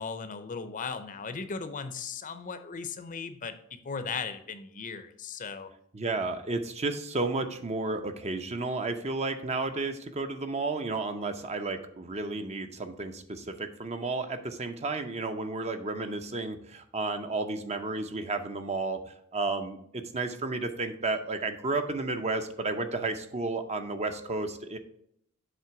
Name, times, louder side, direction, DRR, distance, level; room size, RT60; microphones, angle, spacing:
voice 1, 0.0-3.6 3.8-5.7, left 5 dB, 40° left, 10 dB, 0.6 m, -37 dB
voice 2, 5.9-19.0 19.3-24.8, right 3 dB, 30° right, 8 dB, 0.6 m, -32 dB
7.5 x 3.4 x 5.8 m, 0.70 s
head